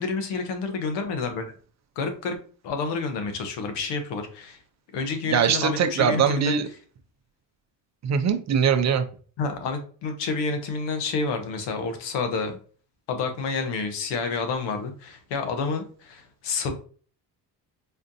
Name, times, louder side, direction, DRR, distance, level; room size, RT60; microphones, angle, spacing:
voice 1, 0.0-1.5 2.0-2.4 2.6-4.6 4.9-6.5 9.4-12.6 13.1-16.7, left 4 dB, 80° left, 6 dB, 1.0 m, -29 dB
voice 2, 5.3-6.7 8.0-9.1, right 7 dB, 40° right, 8 dB, 0.5 m, -22 dB
4.3 x 2.5 x 2.7 m, 0.41 s
cardioid pair, 105°, 42 cm